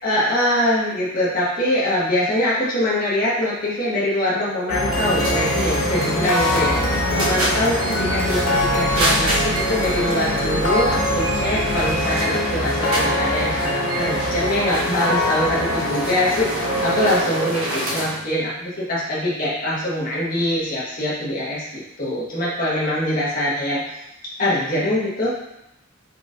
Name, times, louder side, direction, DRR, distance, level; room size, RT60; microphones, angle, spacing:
voice 1, 0.0-6.7 7.1-8.4 8.7-23.8 24.4-25.3, left 1 dB, 40° left, -7 dB, 1.5 m, -23 dB
sound 1, 4.7-18.0, left 1 dB, 80° left, 0.9 m, -23 dB
sound 2, 4.9-18.2, right 1 dB, 75° right, 1.1 m, -27 dB
4.6 x 4.2 x 2.5 m, 0.86 s
head